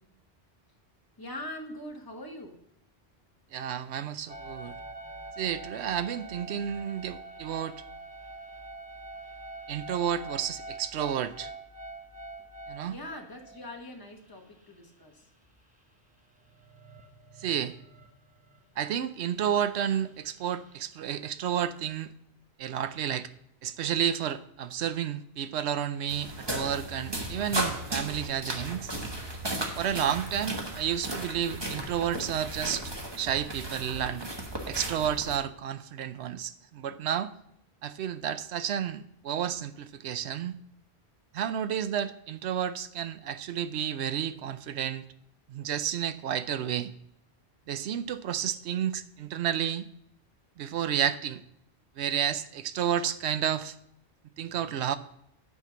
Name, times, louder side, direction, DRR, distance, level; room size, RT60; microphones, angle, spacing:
voice 1, 1.2-2.6 6.3-6.4 12.8-15.3, left 1 dB, 20° left, 1 dB, 1.2 m, -42 dB
voice 2, 3.5-4.8 5.4-7.8 9.7-11.5 12.7-13.0 17.4-17.7 18.8-22.1 22.6-23.3 23.6-28.9 29.7-32.8 33.2-34.2 34.7-37.3 37.8-40.6 41.3-45.0 45.5-46.9 47.7-49.9 50.6-51.4 52.0-53.8 54.4-55.0, right 9 dB, 80° right, 13 dB, 0.9 m, -31 dB
sound 1, 4.3-13.7 14.4-14.5 14.6-14.7 16.3-19.1 19.4-20.7, right 2 dB, 10° right, 1.1 m, -45 dB
sound 2, 26.1-35.4, right 1 dB, 25° right, 1.1 m, -35 dB
9.7 x 4.5 x 6.9 m, 0.73 s
omnidirectional pair, 1.1 m